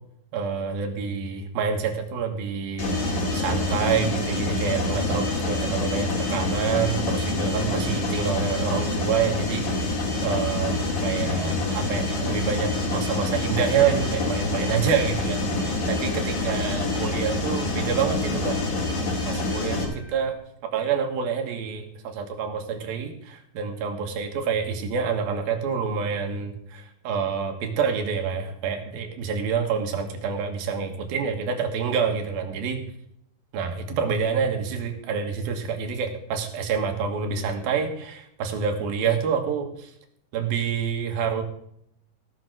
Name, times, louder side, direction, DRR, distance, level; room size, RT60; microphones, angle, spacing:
voice 1, 0.3-18.6 19.3-20.4 20.6-32.8 33.5-39.9 40.3-41.4, right 6 dB, 70° right, 4 dB, 3.3 m, -27 dB
Mechanisms, 2.8-19.8, left 2 dB, 55° left, 3.8 m, -26 dB
sound 1, 13.6-20.4, left 3 dB, 75° left, 4.5 m, -42 dB
17.0 x 6.5 x 6.2 m, 0.72 s
omnidirectional pair, 4.5 m